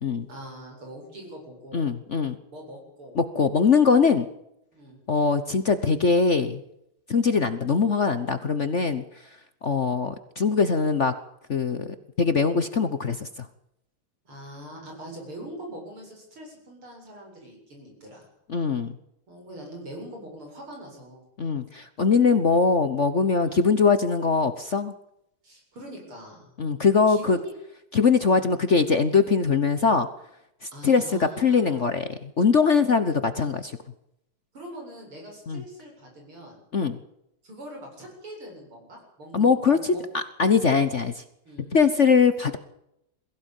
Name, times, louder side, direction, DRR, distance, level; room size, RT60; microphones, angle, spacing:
voice 1, 0.3-1.8 2.5-3.2 4.7-5.0 14.3-18.3 19.3-21.3 22.3-22.4 23.4-23.6 25.4-26.5 27.1-27.5 28.3-28.5 30.7-31.9 34.5-36.6 37.4-40.1 41.5-41.7, right 1 dB, 85° right, 1 dB, 8.9 m, -42 dB
voice 2, 1.7-2.3 3.2-4.3 5.1-6.6 7.1-9.0 9.6-11.1 11.5-13.3 18.5-18.9 21.4-24.9 26.6-27.4 27.9-30.1 30.6-33.7 35.5-35.6 36.7-37.0 39.3-41.2 41.7-42.6, left 5 dB, 45° left, 11 dB, 1.1 m, -22 dB
22.0 x 16.0 x 9.1 m, 0.80 s
omnidirectional pair, 2.3 m